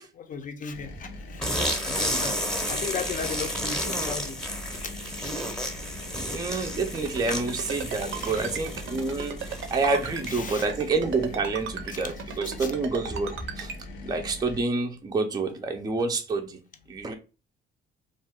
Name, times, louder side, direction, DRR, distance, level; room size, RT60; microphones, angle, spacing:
voice 1, 0.1-2.4 2.7-4.4 4.8-5.4 8.2-8.4 10.3-10.7 11.9-12.0 12.6-12.7, left 5 dB, 40° left, 0.6 m, -36 dB
sound 1, 0.7-14.6, left 2 dB, 80° left, 0.7 m, -41 dB
sound 2, 1.4-10.9, equal, 5° left, 0.8 m, -32 dB
voice 2, 6.2-13.7 14.0-16.6 16.9-17.2, right 3 dB, 20° right, 0.4 m, -28 dB
Ringtone, 6.9-13.8, right 7 dB, 70° right, 0.5 m, -36 dB
2.5 x 2.2 x 3.4 m
cardioid pair, 90°, 20 cm